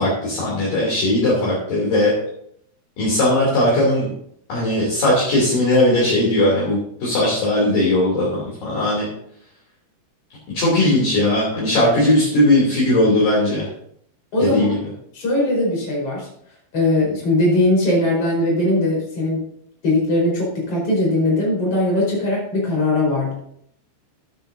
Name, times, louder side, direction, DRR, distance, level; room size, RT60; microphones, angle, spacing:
voice 1, 0.0-2.1 3.0-4.1 4.5-9.0 10.5-13.7 14.4-14.8, left 1 dB, 50° left, -5 dB, 4.4 m, -18 dB
voice 2, 14.3-14.7 15.1-16.3 16.7-19.4 19.8-23.3, left 1 dB, 30° left, -3 dB, 5.3 m, -20 dB
15.5 x 9.1 x 2.8 m, 0.68 s
omnidirectional pair, 5.5 m